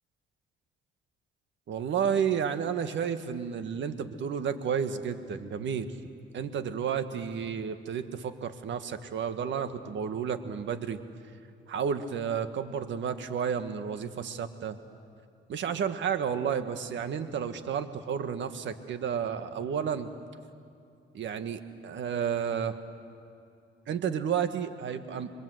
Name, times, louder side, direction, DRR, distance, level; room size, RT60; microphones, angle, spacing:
voice 1, 1.7-5.9 6.3-11.0 11.7-14.8 15.5-20.1 21.1-22.8 23.9-25.3, right 7 dB, 70° right, 9 dB, 1.7 m, -31 dB
28.5 x 24.5 x 8.0 m, 2.6 s
cardioid pair, 90°, 20 cm